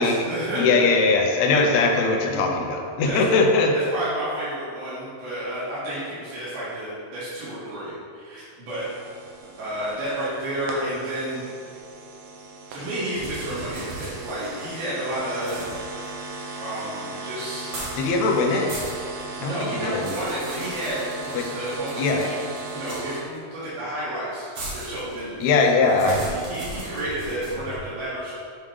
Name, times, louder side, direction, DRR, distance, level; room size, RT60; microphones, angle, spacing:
voice 1, 0.0-0.8 2.3-2.7 3.0-3.2 3.7-8.9 9.6-11.4 12.7-15.6 16.5-17.7 19.4-25.5 26.0-28.4, right 1 dB, 90° right, -12 dB, 3.8 m, -31 dB
voice 2, 0.6-3.7 18.0-18.7 19.4-19.5 19.8-20.0 21.3-21.5 22.0-22.3 25.4-26.2, left 3 dB, 75° left, 1 dB, 1.7 m, -20 dB
sound 1, 8.7-23.2, right 3 dB, 75° right, 2.3 m, -37 dB
sound 2, 13.1-14.9 15.4-16.9 17.6-18.1 18.4-19.2 19.6-23.4 24.5-27.8, right 1 dB, 50° right, 2.0 m, -38 dB
9.0 x 3.3 x 5.1 m, 2.2 s
omnidirectional pair, 4.1 m